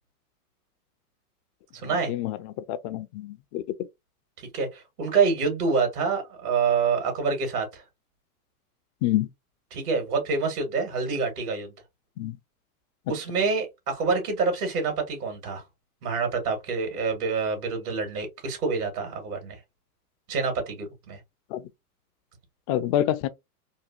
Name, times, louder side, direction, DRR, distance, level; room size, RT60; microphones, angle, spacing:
voice 1, 1.8-2.1 4.5-7.8 9.7-11.7 13.1-15.6 16.0-19.6 20.3-21.2, right 4 dB, 80° right, 2.1 m, -27 dB
voice 2, 2.7-3.6 9.0-9.3 12.2-12.4 21.5-21.6 22.7-23.3, left 12 dB, 35° left, 0.4 m, -26 dB
3.7 x 2.6 x 2.8 m
hypercardioid pair, 105°, 45 cm